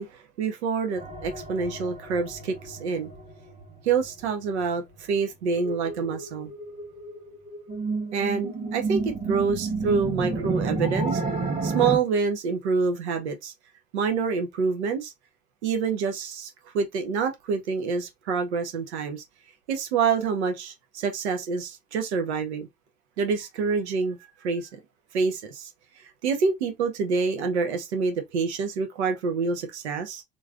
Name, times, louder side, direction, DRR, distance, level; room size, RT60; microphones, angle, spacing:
voice 1, 0.0-3.1 3.8-6.5 8.1-11.2 11.6-13.5 13.9-15.1 15.6-19.2 19.7-22.7 23.2-24.7 25.1-25.7 26.0-30.2, right 5 dB, 85° right, 0.6 m, -27 dB
sound 1, 1.0-12.0, right 3 dB, 20° right, 1.1 m, -32 dB
3.1 x 2.5 x 2.3 m
hypercardioid pair, 65°, 33 cm